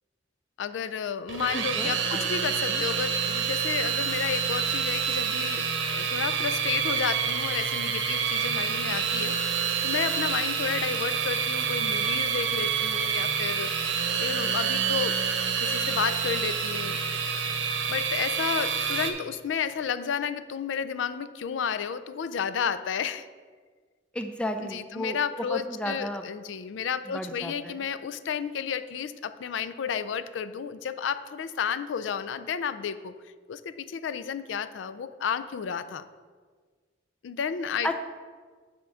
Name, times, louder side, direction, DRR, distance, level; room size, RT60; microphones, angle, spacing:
voice 1, 0.6-13.7 14.2-15.2 15.4-17.0 17.9-23.3 24.6-33.1 33.5-36.0 37.2-37.9, left 7 dB, 85° left, 13 dB, 0.4 m, -32 dB
sound 1, 1.3-19.1, right 6 dB, 90° right, 0.8 m, -28 dB
voice 2, 1.5-2.3 2.7-2.8 24.1-25.2 25.5-26.2 27.1-27.8 37.8-37.9, left 1 dB, 5° left, 6 dB, 0.4 m, -33 dB
8.2 x 3.7 x 6.3 m, 1.5 s
head